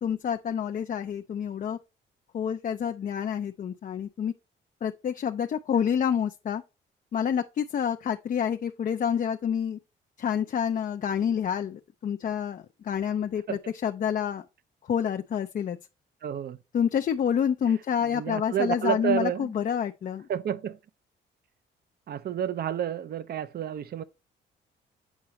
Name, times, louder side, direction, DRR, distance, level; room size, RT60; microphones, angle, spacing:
voice 1, 0.0-1.8 2.3-4.3 4.8-6.6 7.1-9.8 10.2-14.4 14.9-15.8 16.7-20.3, left 8 dB, 45° left, 0.5 m, -28 dB
voice 2, 16.2-16.6 18.0-19.5 20.3-20.8 22.1-24.0, right 9 dB, 55° right, 0.6 m, -30 dB
8.1 x 4.7 x 2.9 m
cardioid pair, 90°, 20 cm